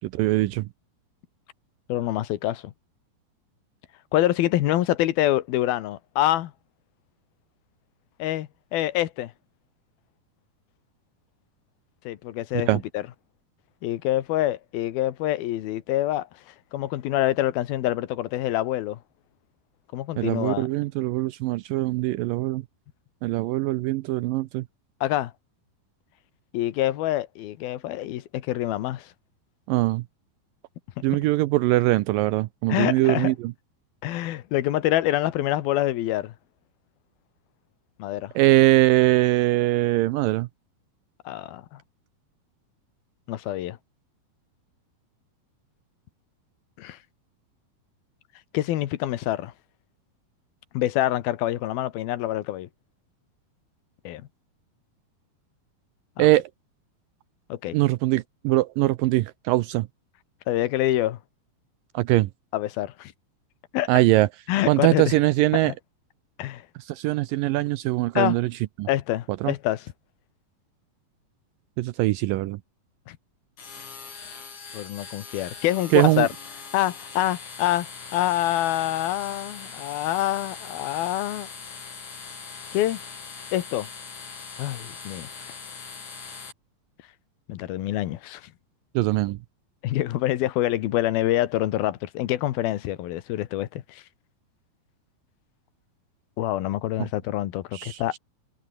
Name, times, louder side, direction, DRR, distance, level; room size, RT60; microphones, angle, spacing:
voice 1, 0.1-0.7 12.7-12.8 20.2-22.6 23.2-24.6 29.7-30.0 31.0-33.5 38.4-40.5 56.2-56.5 57.7-59.9 61.9-62.3 63.9-64.3 64.7-65.7 66.9-68.5 68.8-68.9 69.4-69.5 71.8-72.6 75.9-76.3 89.0-89.4 97.7-98.2, right 17 dB, 80° right, 2.2 m, -22 dB
voice 2, 1.9-2.7 4.1-6.5 8.2-9.3 12.0-13.0 13.8-19.0 19.9-20.7 25.0-25.3 26.5-29.1 32.7-33.3 34.0-36.3 38.0-38.3 41.3-41.8 43.3-43.8 46.8-47.0 48.5-49.5 50.7-52.7 54.0-54.2 56.2-56.3 57.5-57.8 60.5-61.2 62.5-63.1 63.7-63.9 64.5-65.2 65.5-65.7 66.4-66.7 68.1-68.4 68.9-69.9 73.1-73.2 74.7-76.3 76.7-81.5 82.7-83.0 83.5-83.9 84.6-85.5 87.5-88.5 89.8-94.0 96.4-98.2, left 14 dB, 80° left, 3.1 m, -26 dB
sound 1, 73.6-86.5, left 5 dB, 55° left, 6.1 m, -41 dB
omnidirectional pair, 4.3 m